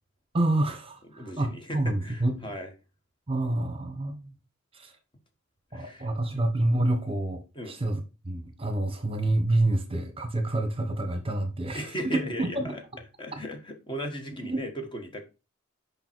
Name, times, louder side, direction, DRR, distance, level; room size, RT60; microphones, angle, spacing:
voice 1, 0.3-2.4 3.3-4.3 4.7-4.9 5.7-7.4 7.7-11.9 12.4-12.8 14.4-14.6, right 1 dB, 30° right, 1.1 m, -28 dB
voice 2, 1.0-2.7 5.7-6.4 7.5-7.7 11.7-12.8 13.2-15.2, equal, 25° left, 1.4 m, -37 dB
6.8 x 5.4 x 4.6 m
head